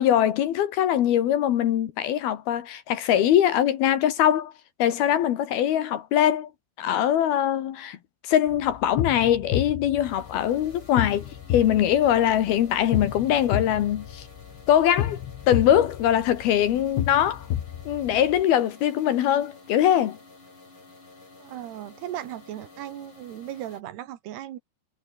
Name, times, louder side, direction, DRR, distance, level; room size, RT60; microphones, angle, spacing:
voice 1, 0.0-4.5 4.8-6.5 6.8-8.0 8.2-14.3 14.7-15.2 15.5-17.5 17.9-20.2, left 11 dB, 65° left, 3.1 m, -22 dB
sound 1, 8.5-18.4, left 11 dB, 85° left, 4.4 m, -32 dB
sound 2, 10.0-23.8, left 3 dB, 25° left, 7.2 m, -50 dB
voice 2, 21.4-24.6, right 12 dB, 70° right, 3.4 m, -37 dB
omnidirectional pair, 5.2 m